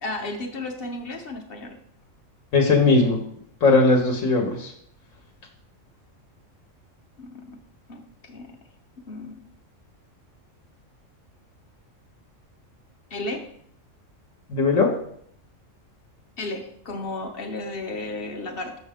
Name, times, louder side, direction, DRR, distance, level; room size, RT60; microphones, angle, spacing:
voice 1, 0.0-1.8 7.2-7.6 7.9-8.6 9.1-9.4 13.1-13.5 16.4-18.8, left 2 dB, 50° left, 3 dB, 1.0 m, -33 dB
voice 2, 2.5-3.2 3.6-4.7 14.5-14.9, left 3 dB, 75° left, 1 dB, 1.2 m, -19 dB
6.4 x 6.1 x 3.5 m, 0.67 s
omnidirectional pair, 1.4 m